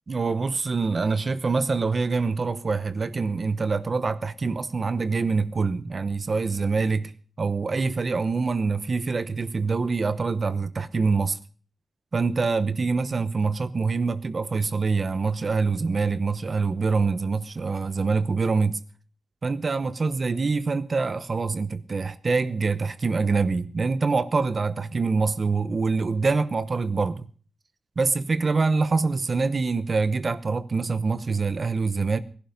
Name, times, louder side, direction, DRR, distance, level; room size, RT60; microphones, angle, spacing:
voice 1, 0.1-7.1 7.4-11.4 12.1-18.8 19.4-27.3 28.0-32.2, right 4 dB, 40° right, 0.9 m, -25 dB
20.0 x 11.5 x 5.3 m
wide cardioid pair, 140°, 0 cm